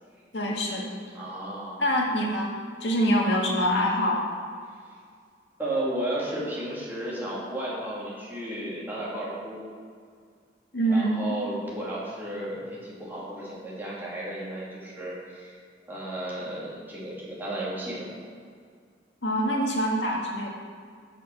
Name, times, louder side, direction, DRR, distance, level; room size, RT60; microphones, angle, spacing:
voice 1, 0.3-0.9 1.8-4.2 10.7-11.4 19.2-20.5, equal, 80° left, -1 dB, 1.7 m, -25 dB
voice 2, 1.1-1.8 5.6-9.6 10.9-15.5 15.9-18.2, right 1 dB, 10° right, -8 dB, 2.7 m, -33 dB
8.9 x 6.5 x 7.1 m, 2.1 s
head